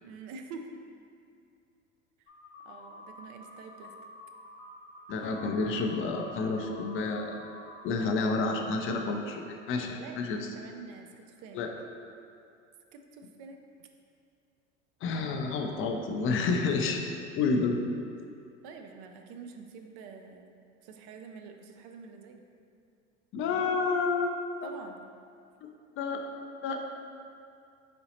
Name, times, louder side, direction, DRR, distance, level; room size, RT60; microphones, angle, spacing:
voice 1, 0.0-0.7 2.7-3.9 5.1-5.4 9.7-10.2 10.6-11.6 12.9-13.6 18.6-22.4 24.6-25.1, right 5 dB, 50° right, 4 dB, 0.5 m, -47 dB
sound 1, 2.3-9.0, left 2 dB, 60° left, 0.8 m, -49 dB
voice 2, 5.1-7.4 7.8-10.4 11.5-11.7 15.0-17.0 17.4-17.8 23.3-24.7 26.0-26.2 26.6-26.8, left 4 dB, 35° left, 3 dB, 0.4 m, -29 dB
4.2 x 3.8 x 2.8 m, 2.4 s
hypercardioid pair, 85°, 39 cm